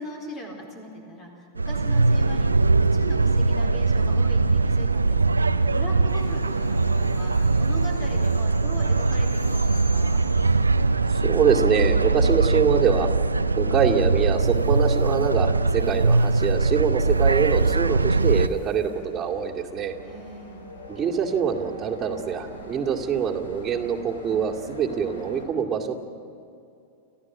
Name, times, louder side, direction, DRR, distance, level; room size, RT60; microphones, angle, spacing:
voice 1, 0.0-5.2 5.7-10.2 20.0-20.6, left 1 dB, 30° left, 1 dB, 4.3 m, -40 dB
sound 1, 1.6-18.5, right 3 dB, 85° right, 0.6 m, -21 dB
sound 2, 6.1-25.4, equal, 75° left, 4.1 m, -44 dB
voice 2, 11.1-13.1 13.6-20.0 20.9-26.0, right 7 dB, 25° right, -3 dB, 2.4 m, -24 dB
29.5 x 14.5 x 6.1 m, 2.5 s
figure-of-eight pair, 90°, 0 cm